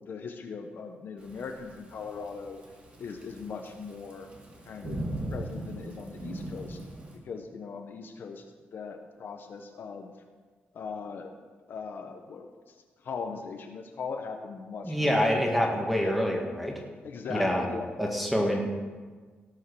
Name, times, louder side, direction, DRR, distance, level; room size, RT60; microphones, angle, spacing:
voice 1, 0.0-2.6 3.0-4.3 4.6-6.8 7.2-8.4 8.7-10.1 10.7-11.3 11.7-12.7 13.0-15.3 16.0-16.2 17.0-18.4, left 5 dB, 60° left, 4 dB, 1.1 m, -39 dB
Thunderstorm / Rain, 1.2-7.2, right 1 dB, 30° right, 2.3 m, -39 dB
voice 2, 14.8-16.8 17.3-17.6 18.0-18.6, equal, ahead, 0 dB, 2.1 m, -26 dB
17.0 x 6.4 x 6.4 m, 1.5 s
wide cardioid pair, 135°, 4 cm